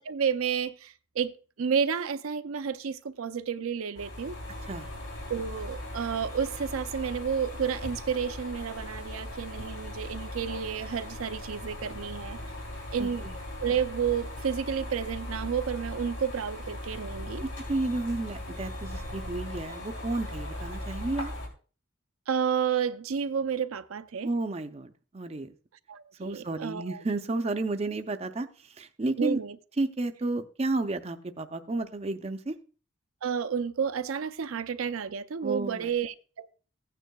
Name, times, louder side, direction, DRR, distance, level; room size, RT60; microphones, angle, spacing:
voice 1, 0.0-4.4 5.3-12.5 12.9-13.3 13.6-17.4 22.3-24.3 25.9-27.0 29.2-29.6 33.2-36.5, right 7 dB, 85° right, 0.5 m, -31 dB
sound 1, 3.9-21.5, left 1 dB, 85° left, 3.4 m, -39 dB
voice 2, 13.0-13.4 17.4-21.3 24.2-25.5 26.2-28.5 28.8-29.4 29.8-32.5 35.4-35.9, right 2 dB, 30° right, 0.5 m, -32 dB
15.5 x 9.2 x 2.3 m
head